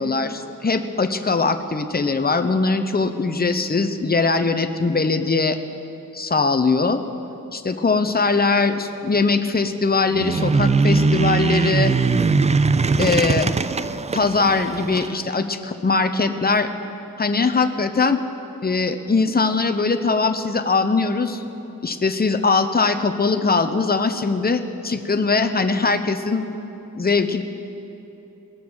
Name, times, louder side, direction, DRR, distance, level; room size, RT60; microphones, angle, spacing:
voice 1, 0.0-5.6 6.1-7.0 7.5-11.9 13.0-13.5 14.1-16.7 17.2-18.2 18.6-21.4 21.8-26.5 27.0-27.4, left 4 dB, 25° left, 7 dB, 0.8 m, -21 dB
sound 1, 10.1-15.1, right 4 dB, 20° right, 0.3 m, -20 dB
20.0 x 7.1 x 6.2 m, 2.9 s
cardioid pair, 70°, 35 cm